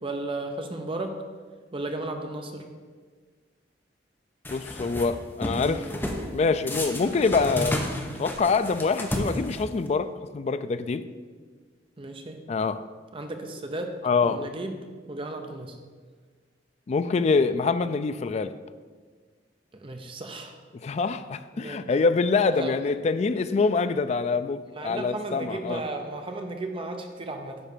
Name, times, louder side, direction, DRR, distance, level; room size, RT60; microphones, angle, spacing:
voice 1, 0.0-1.2 1.7-2.6 12.0-12.4 13.1-13.9 14.2-14.8 15.1-15.7 19.7-20.6 21.5-22.0 22.5-22.8 24.7-27.6, right 2 dB, 30° right, 0.7 m, -34 dB
sound 1, 4.4-5.1 5.4-6.2 6.7-9.9, left 1 dB, 10° left, 0.8 m, -32 dB
voice 2, 4.5-5.9 6.3-7.9 8.2-11.0 12.5-12.8 14.0-14.5 16.9-18.6 20.8-25.8, left 4 dB, 40° left, 0.3 m, -25 dB
9.7 x 3.3 x 6.6 m
head